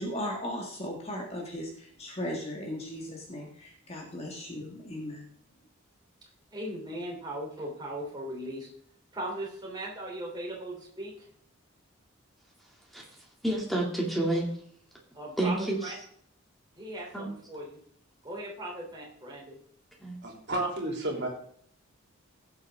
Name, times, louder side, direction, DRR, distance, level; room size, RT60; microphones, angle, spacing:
voice 1, 0.0-5.3, left 1 dB, 30° left, 0 dB, 1.7 m, -37 dB
voice 2, 6.5-8.7 9.1-11.3 15.1-15.6 15.8-15.9 16.8-17.8 18.2-19.6, right 1 dB, 20° right, -3 dB, 3.2 m, -38 dB
voice 3, 13.4-14.5 15.4-15.9 17.1-17.3 20.0-20.2, right 1 dB, ahead, -2 dB, 2.5 m, -29 dB
voice 4, 20.2-21.3, right 1 dB, 55° right, 0 dB, 3.2 m, -31 dB
16.5 x 7.6 x 3.6 m, 0.62 s
head